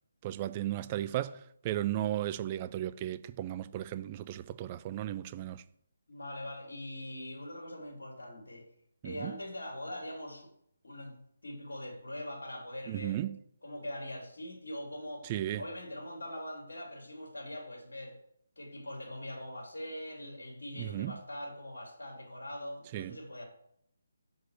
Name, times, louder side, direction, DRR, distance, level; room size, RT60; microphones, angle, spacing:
voice 1, 0.2-5.6 9.0-9.3 12.9-13.4 15.2-15.6 20.8-21.2 22.9-23.2, right 13 dB, 25° right, 0.4 m, -35 dB
voice 2, 6.1-8.7 9.0-10.5 10.8-11.2 11.4-13.2 13.6-15.3 15.6-18.2 18.6-23.5, left 1 dB, 70° left, 2.9 m, -42 dB
5.7 x 5.3 x 6.5 m
figure-of-eight pair, 145°, 0 cm